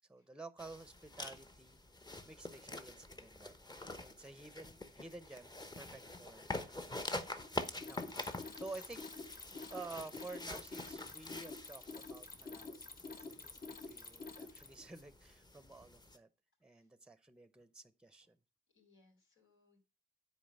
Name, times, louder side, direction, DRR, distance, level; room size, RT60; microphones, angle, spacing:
voice 1, 0.1-1.8 2.2-7.4 7.9-9.4 9.7-12.8 13.0-13.4 13.9-16.3 16.6-18.4, right 3 dB, 5° right, 0.7 m, -52 dB
sound 1, 0.6-16.2, left 2 dB, 20° left, 1.0 m, -46 dB
Mechanisms, 7.4-14.9, left 3 dB, 45° left, 1.4 m, -48 dB
voice 2, 18.7-19.8, left 3 dB, 80° left, 4.1 m, -71 dB
9.2 x 4.6 x 5.4 m
cardioid pair, 90°, 20 cm